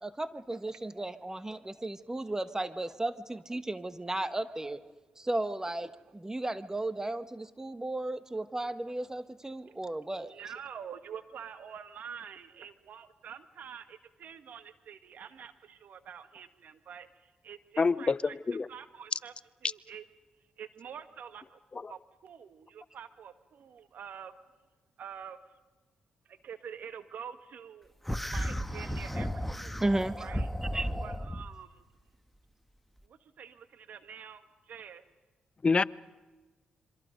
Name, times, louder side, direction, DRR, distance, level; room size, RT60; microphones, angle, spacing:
voice 1, 0.0-4.8 5.2-10.3 29.8-30.3 30.7-30.9, right 2 dB, 20° right, 1.3 m, -34 dB
voice 2, 1.3-1.7 3.3-3.4 5.6-5.7 8.9-9.0 9.7-9.8 10.2-18.4 18.7-19.3 19.6-20.1 20.4-21.6 21.9-24.3 25.0-25.6 26.2-27.9 28.3-29.8 30.2-30.5 31.0-31.8 33.0-35.0, right 7 dB, 70° right, 1.7 m, -47 dB
voice 3, 17.8-18.2 18.5-18.7 35.6-35.8, left 4 dB, 35° left, 0.7 m, -25 dB
sound 1, 28.1-31.5, equal, 5° left, 1.3 m, -34 dB
27.0 x 24.5 x 5.3 m
supercardioid pair, 55°, 3 cm